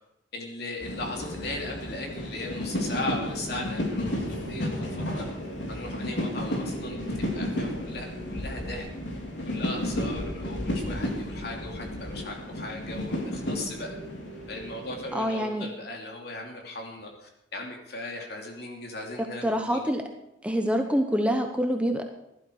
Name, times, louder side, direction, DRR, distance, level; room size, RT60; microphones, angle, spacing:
voice 1, 0.3-5.3 5.7-7.0 7.3-8.9 9.4-14.0 14.5-19.8, left 2 dB, 60° left, 1 dB, 2.8 m, -37 dB
sound 1, 0.8-15.2, left 1 dB, 80° left, 3.3 m, -32 dB
voice 2, 15.1-15.7 19.2-20.0 20.4-22.0, equal, 5° right, 4 dB, 0.9 m, -26 dB
16.0 x 12.0 x 4.8 m, 0.85 s
head